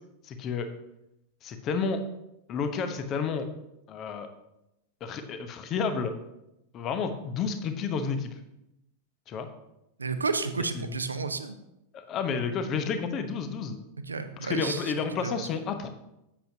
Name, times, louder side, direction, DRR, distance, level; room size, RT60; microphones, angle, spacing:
voice 1, 0.2-0.7 1.4-2.0 2.5-3.5 3.9-4.3 5.0-6.2 6.7-8.3 9.3-9.5 10.8-11.0 11.9-13.8 14.4-15.9, left 5 dB, 35° left, 8 dB, 0.9 m, -31 dB
voice 2, 10.0-11.6 14.1-14.9 15.2-15.5, right 4 dB, 75° right, 10 dB, 0.6 m, -31 dB
9.9 x 8.0 x 2.8 m, 0.87 s
figure-of-eight pair, 90°, 0 cm